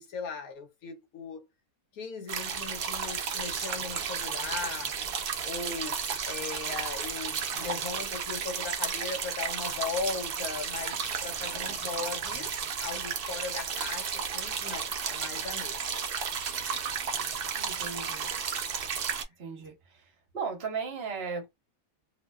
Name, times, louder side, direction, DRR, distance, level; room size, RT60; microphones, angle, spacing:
voice 1, 0.0-1.4 1.9-5.0 5.4-12.5 12.8-16.0, left 4 dB, 85° left, 1.2 m, -38 dB
sound 1, 2.3-19.2, right 6 dB, 65° right, 0.5 m, -33 dB
voice 2, 17.6-18.3 19.4-20.0 20.3-21.5, right 5 dB, 50° right, 0.9 m, -36 dB
2.7 x 2.1 x 2.2 m
omnidirectional pair, 1.5 m